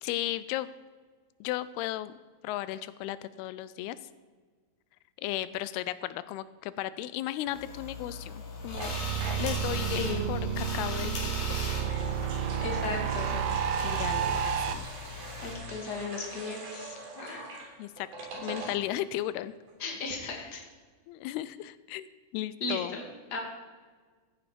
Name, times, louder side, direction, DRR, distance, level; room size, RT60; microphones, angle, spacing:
voice 1, 0.0-0.7 1.4-2.1 2.4-4.0 5.2-8.9 9.3-11.3 11.8-12.2 13.8-14.9 17.8-18.1 18.4-19.5 20.2-20.5 21.1-22.1 22.3-23.0, left 14 dB, 85° left, 16 dB, 2.5 m, -35 dB
sound 1, 7.5-15.5, left 3 dB, 55° left, 4.2 m, -40 dB
sound 2, 8.6-14.7, right 8 dB, 85° right, 2.7 m, -31 dB
sound 3, 8.8-9.9 10.8-19.1 19.4-19.5 19.7-20.0, right 2 dB, 70° right, 5.1 m, -44 dB
voice 2, 12.6-13.6 15.4-17.5 19.8-20.6 22.6-23.0 23.3-23.4, left 3 dB, 30° left, 2 dB, 2.3 m, -36 dB
15.0 x 9.3 x 5.1 m, 1.5 s
omnidirectional pair, 4.5 m